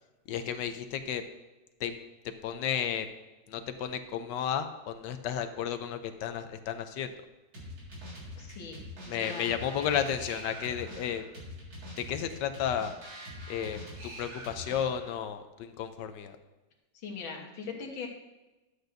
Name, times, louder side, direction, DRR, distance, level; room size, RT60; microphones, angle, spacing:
voice 1, 0.3-1.2 1.8-2.0 2.4-3.1 3.5-7.1 9.1-11.2 12.0-12.9 13.5-16.4, left 8 dB, 75° left, 9 dB, 1.2 m, -33 dB
sound 1, 7.5-15.2, equal, 90° right, 2.9 m, -44 dB
voice 2, 8.4-8.8 9.1-9.5 16.9-18.1, left 5 dB, 90° left, 1 dB, 2.1 m, -40 dB
11.5 x 8.0 x 2.6 m, 1.1 s
omnidirectional pair, 2.1 m